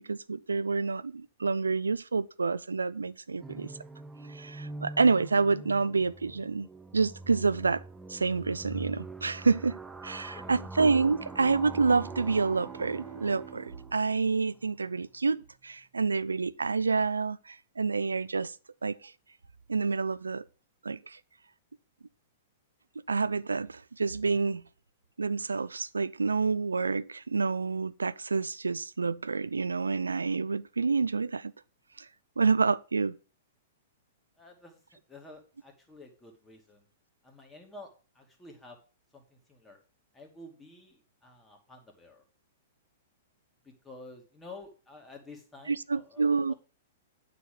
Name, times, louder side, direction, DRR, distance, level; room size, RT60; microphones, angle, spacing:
voice 1, 0.1-3.7 4.3-6.7 6.9-7.8 8.1-18.5 18.8-18.9 19.7-20.4 20.8-21.2 23.1-24.6 25.2-31.5 32.0-32.1 32.4-33.1 45.7-46.5, right 4 dB, 85° right, 0.4 m, -28 dB
sound 1, 3.4-14.2, right 2 dB, 5° right, 0.7 m, -44 dB
voice 2, 10.3-10.7 34.4-34.8 35.1-36.8 37.2-37.9 38.1-38.8 39.1-39.8 40.1-42.2 43.6-46.5, left 2 dB, 10° left, 2.4 m, -50 dB
Bowed string instrument, 10.9-15.5, right 9 dB, 30° right, 1.8 m, -48 dB
9.1 x 4.1 x 6.7 m
hypercardioid pair, 110°, 0 cm